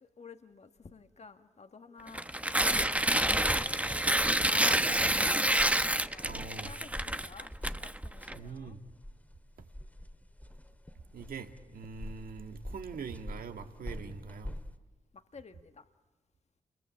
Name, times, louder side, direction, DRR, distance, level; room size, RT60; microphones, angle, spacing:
voice 1, 0.0-2.4 3.1-4.1 4.5-5.3 6.1-6.3 6.6-7.5 7.8-8.8 15.1-15.8, left 4 dB, 50° left, 7 dB, 1.6 m, -51 dB
Tearing, 2.1-8.3, right 1 dB, 10° right, 1.0 m, -28 dB
sound 1, 2.9-14.8, left 1 dB, 10° left, 2.0 m, -46 dB
voice 2, 6.2-6.7 8.3-8.8 11.1-14.5, right 5 dB, 75° right, 6 dB, 1.8 m, -43 dB
28.5 x 22.5 x 8.7 m, 1.2 s
supercardioid pair, 45°, 15 cm